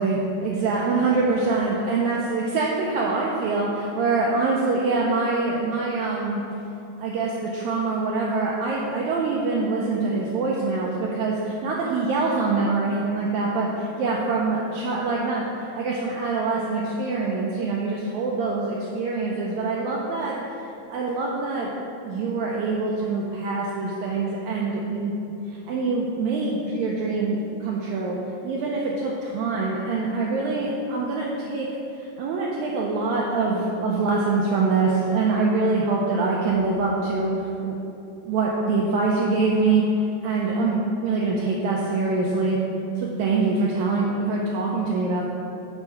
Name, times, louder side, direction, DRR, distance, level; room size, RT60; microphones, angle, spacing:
voice 1, 0.0-6.4 7.0-20.4 20.9-21.7 22.0-25.1 25.5-28.2 28.4-31.7 32.0-37.7 38.3-39.8 40.2-42.6 43.0-45.3, right 3 dB, 80° right, -3 dB, 1.7 m, -24 dB
8.0 x 3.5 x 5.6 m, 2.8 s
omnidirectional pair, 3.8 m